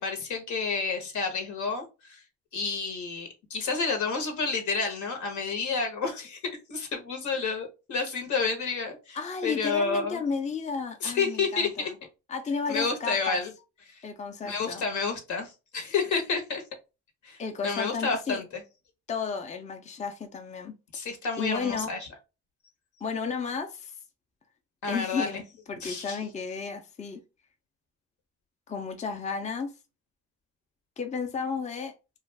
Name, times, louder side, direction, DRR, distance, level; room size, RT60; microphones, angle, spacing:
voice 1, 0.0-2.2 2.5-10.2 11.0-11.9 12.7-13.5 13.8-14.1 14.4-16.6 17.2-18.6 20.9-22.0 24.8-25.4 25.8-26.2, left 4 dB, 75° left, 1.1 m, -30 dB
voice 2, 9.1-11.9 12.3-13.4 14.0-14.8 17.4-18.4 19.1-20.7 21.4-21.9 23.0-23.9 24.9-25.4 25.7-27.2 28.7-29.7 31.0-31.9, left 5 dB, 25° left, 0.5 m, -33 dB
2.4 x 2.3 x 3.2 m
cardioid pair, 90°, 30 cm